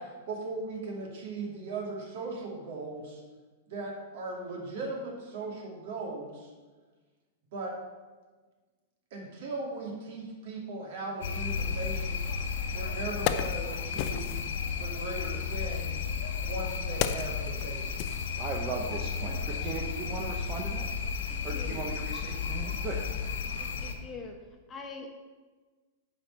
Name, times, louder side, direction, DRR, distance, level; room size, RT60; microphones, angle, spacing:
voice 1, 0.0-3.2 3.7-6.5 7.5-7.8 9.1-12.4 12.7-14.4 14.8-16.1 16.4-18.3, right 3 dB, 55° right, -1 dB, 2.5 m, -38 dB
sound 1, 11.2-23.9, left 6 dB, 75° left, 1.1 m, -33 dB
Wood, 12.4-12.5 12.9-14.6 15.6-18.9 19.2-19.3, left 10 dB, 40° left, 0.5 m, -35 dB
voice 2, 18.4-20.9 21.4-23.0, right 4 dB, 25° right, -1 dB, 0.9 m, -37 dB
voice 3, 21.3-21.9 23.6-24.4 24.7-25.1, left 4 dB, 20° left, 3 dB, 0.9 m, -44 dB
9.2 x 4.6 x 6.7 m, 1.3 s
supercardioid pair, 150°, 0 cm